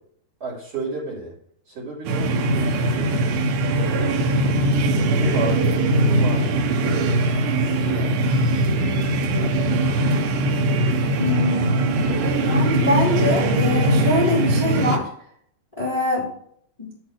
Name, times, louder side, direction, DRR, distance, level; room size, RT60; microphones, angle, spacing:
voice 1, 0.4-1.3 1.7-3.4 4.3-4.7 5.0-8.3 9.3-9.7, right 3 dB, 35° right, -7 dB, 5.0 m, -33 dB
sound 1, 2.1-15.0, right 1 dB, 80° right, 3.4 m, -21 dB
voice 2, 11.2-12.0 12.4-15.1 15.8-16.3 16.8-16.9, left 1 dB, 10° left, -6 dB, 2.8 m, -23 dB
11.5 x 8.7 x 3.3 m, 0.64 s
omnidirectional pair, 4.9 m